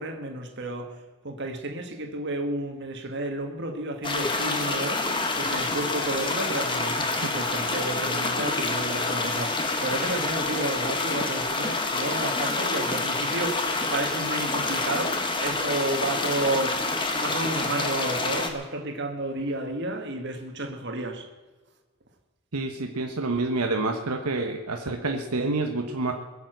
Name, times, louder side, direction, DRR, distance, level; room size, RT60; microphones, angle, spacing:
voice 1, 0.0-21.3, right 2 dB, 50° right, 1.7 m, -32 dB
sound 1, 4.0-18.5, left 3 dB, 20° left, 1.3 m, -27 dB
voice 2, 22.5-26.1, right 2 dB, 85° right, 1.2 m, -28 dB
21.0 x 7.2 x 8.0 m
head